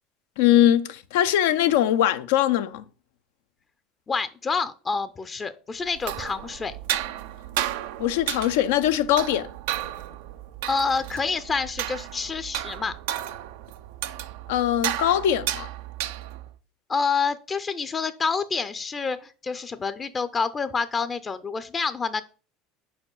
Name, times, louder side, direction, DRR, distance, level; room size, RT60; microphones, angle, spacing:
voice 1, 0.4-2.8 8.0-9.5 14.5-15.7, left 11 dB, 75° left, 0.5 m, -21 dB
voice 2, 4.1-6.8 10.7-12.9 16.9-22.2, left 5 dB, 30° left, 0.5 m, -28 dB
sound 1, 5.9-16.5, right 13 dB, 75° right, 0.4 m, -33 dB
4.9 x 4.8 x 5.4 m
hypercardioid pair, 80°, 0 cm